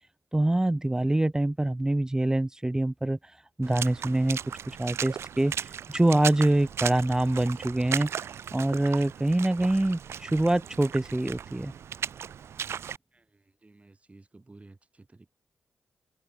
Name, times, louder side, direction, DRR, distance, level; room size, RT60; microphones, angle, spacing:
voice 1, 0.3-3.2 3.6-4.4 4.7-8.1 8.5-11.7, right 1 dB, 15° right, 0.5 m, -25 dB
Water / Splash splatter, 3.6-13.0, right 8 dB, 75° right, 2.4 m, -37 dB
voice 2, 13.1-15.3, right 2 dB, 30° right, 5.9 m, -54 dB
supercardioid pair, 50°, 4 cm